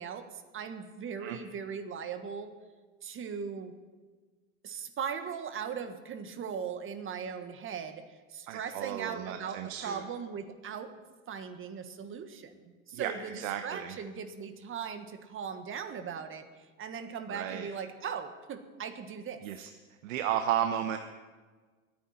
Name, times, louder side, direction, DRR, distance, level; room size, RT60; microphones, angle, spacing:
voice 1, 0.0-2.5 3.0-3.7 4.6-8.0 8.3-10.9 11.3-19.4, right 7 dB, 30° right, 9 dB, 1.6 m, -39 dB
voice 2, 8.5-10.0 12.9-13.9 17.3-17.7 19.4-19.7 20.0-21.0, right 10 dB, 65° right, 7 dB, 1.1 m, -33 dB
25.5 x 9.4 x 4.4 m, 1.4 s
hypercardioid pair, 105°, 42 cm